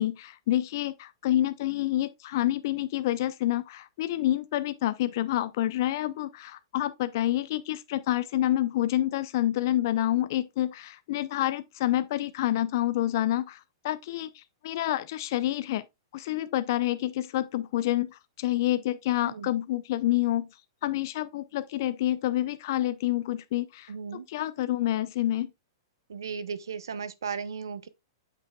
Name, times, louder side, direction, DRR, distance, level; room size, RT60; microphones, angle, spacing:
voice 1, 0.0-13.6 13.8-15.8 16.1-20.5 20.8-25.5, left 14 dB, 60° left, 0.6 m, -28 dB
voice 2, 23.9-24.3 26.1-27.9, right 6 dB, 85° right, 0.7 m, -36 dB
8.2 x 6.1 x 2.3 m
hypercardioid pair, 120°, 2 cm